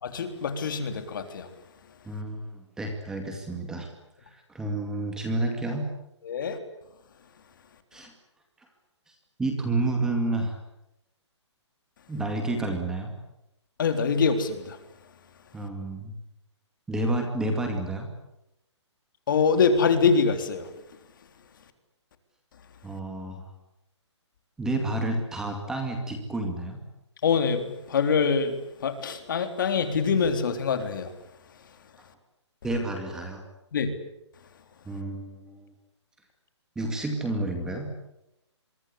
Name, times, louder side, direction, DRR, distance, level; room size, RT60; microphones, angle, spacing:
voice 1, 0.0-1.5 6.2-6.6 13.8-14.8 19.3-20.7 27.2-31.1 33.7-33.9, left 5 dB, 45° left, 8 dB, 3.7 m, -24 dB
voice 2, 2.1-3.9 4.2-5.9 7.9-8.1 8.6-8.7 9.1-10.6 12.1-13.1 15.5-16.1 16.9-18.1 22.8-23.5 24.6-26.8 32.6-33.4 34.9-35.7 36.8-37.9, right 2 dB, 5° right, 3 dB, 2.2 m, -30 dB
27.0 x 23.5 x 8.5 m, 0.83 s
hypercardioid pair, 170°, 15 cm